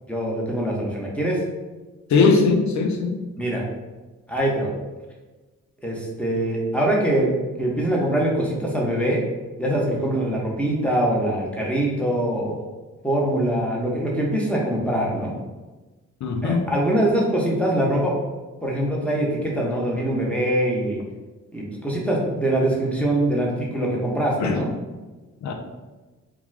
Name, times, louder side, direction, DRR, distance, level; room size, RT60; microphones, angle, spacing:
voice 1, 0.1-1.4 3.4-3.7 4.3-4.7 5.8-7.3 7.6-9.2 9.6-12.7 13.0-15.3 16.4-18.1 18.6-21.0 21.5-24.7, right 1 dB, 5° left, -3 dB, 0.8 m, -23 dB
voice 2, 2.1-3.2 16.2-16.7 24.4-24.6 25.4-25.5, left 4 dB, 55° left, 4 dB, 0.5 m, -20 dB
2.4 x 2.3 x 3.2 m, 1.2 s
supercardioid pair, 45°, 35 cm